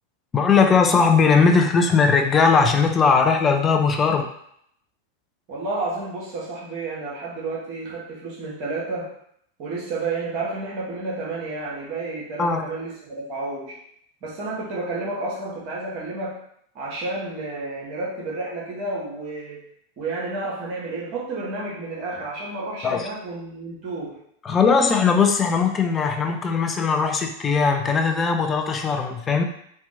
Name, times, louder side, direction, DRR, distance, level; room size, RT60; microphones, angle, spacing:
voice 1, 0.3-4.3 12.4-12.6 22.8-23.1 24.4-29.4, left 5 dB, 20° left, 5 dB, 0.3 m, -19 dB
voice 2, 5.5-9.1 9.6-13.8 14.2-16.4 16.7-19.6 20.0-24.2, right 3 dB, 40° right, -4 dB, 0.9 m, -31 dB
2.8 x 2.1 x 2.6 m, 0.69 s
figure-of-eight pair, 90°, 0 cm